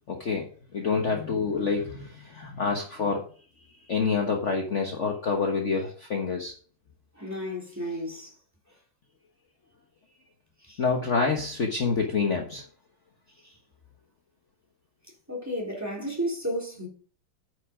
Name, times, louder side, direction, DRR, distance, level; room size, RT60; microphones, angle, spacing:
voice 1, 0.1-3.3 3.9-6.5 10.8-12.6, left 4 dB, 45° left, 1.4 m, -27 dB
voice 2, 7.1-8.3 10.6-10.8 13.4-13.5 15.3-16.9, equal, 10° right, 3.0 m, -33 dB
9.2 x 6.5 x 5.1 m
omnidirectional pair, 2.1 m